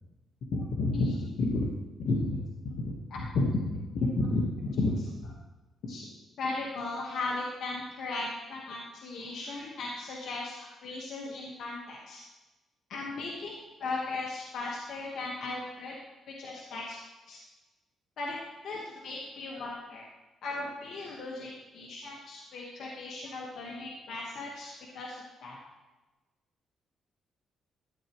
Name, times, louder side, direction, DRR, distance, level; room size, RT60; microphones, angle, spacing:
voice 1, 0.5-1.7 2.0-5.3 5.8-6.0 6.4-12.2 12.9-13.5 13.8-15.9 16.3-17.0 17.3-17.4 18.2-18.4 18.6-20.1 20.4-25.2 25.4-25.6, left 2 dB, 70° left, -3 dB, 1.4 m, -34 dB
12.5 x 8.2 x 3.1 m, 1.1 s
cardioid pair, 90°, 0 cm